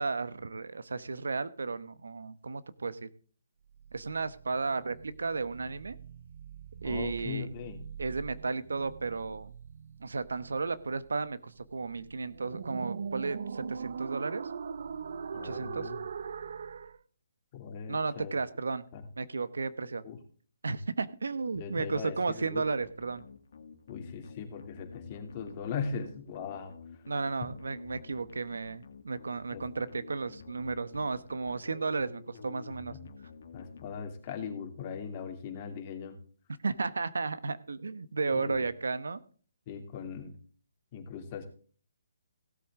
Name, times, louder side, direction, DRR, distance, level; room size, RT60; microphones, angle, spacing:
voice 1, 0.0-3.1 3.9-6.0 6.8-7.5 8.0-9.5 10.0-14.5 15.4-15.9 17.9-18.8 19.2-20.0 20.6-23.2 27.1-33.0 36.6-39.2, right 4 dB, 80° right, 14 dB, 1.0 m, -34 dB
sound 1, 3.7-17.0, right 6 dB, 65° right, 0.6 m, -42 dB
voice 2, 6.8-7.8 15.3-16.0 17.5-18.3 18.9-19.0 20.0-20.2 21.6-22.6 23.9-26.7 29.5-29.6 32.9-33.0 33.5-36.2 38.3-38.6 39.7-40.3 40.9-41.5, left 6 dB, 35° left, 4 dB, 2.7 m, -39 dB
sound 2, 22.6-34.5, left 5 dB, 60° left, 1.8 m, -51 dB
17.0 x 8.0 x 3.7 m, 0.42 s
hypercardioid pair, 150°, 0 cm